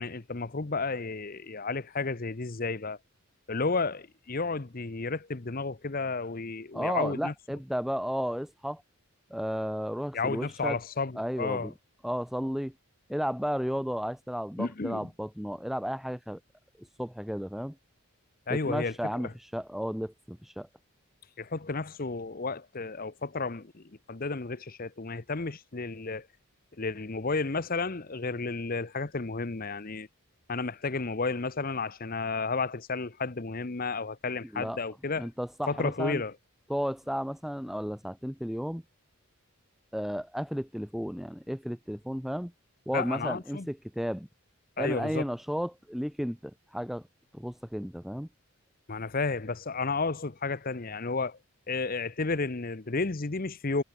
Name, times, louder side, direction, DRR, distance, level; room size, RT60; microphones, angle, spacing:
voice 1, 0.0-3.0 3.5-7.3 10.1-11.7 14.6-15.1 18.5-18.9 19.2-19.3 21.4-23.8 24.1-26.3 26.8-30.1 30.5-35.3 35.7-36.3 42.9-43.7 44.8-45.2 48.9-51.4 51.7-53.8, left 3 dB, 40° left, 0.9 m, -32 dB
voice 2, 6.7-8.8 9.3-10.8 11.2-11.7 12.0-12.7 13.1-16.4 16.8-17.7 18.5-20.7 34.5-34.8 35.2-36.2 36.7-38.8 39.9-42.5 42.9-44.3 44.8-47.0 47.3-48.3, equal, ahead, 0.7 m, -33 dB
head